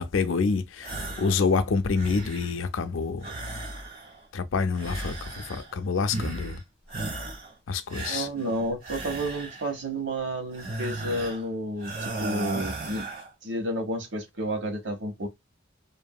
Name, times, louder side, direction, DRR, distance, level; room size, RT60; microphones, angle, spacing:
voice 1, 0.0-3.3 4.3-6.6 7.7-8.3, left 4 dB, 85° left, 0.5 m, -27 dB
sound 1, 0.8-1.4 1.7-2.6 3.2-4.3 4.7-5.8 6.1-6.6 6.9-7.5 7.9-9.8 10.5-11.5 11.8-13.3, right 2 dB, 45° right, 1.5 m, -36 dB
voice 2, 8.1-13.1 13.4-15.3, right 1 dB, 65° right, 1.0 m, -31 dB
2.8 x 2.6 x 2.2 m
head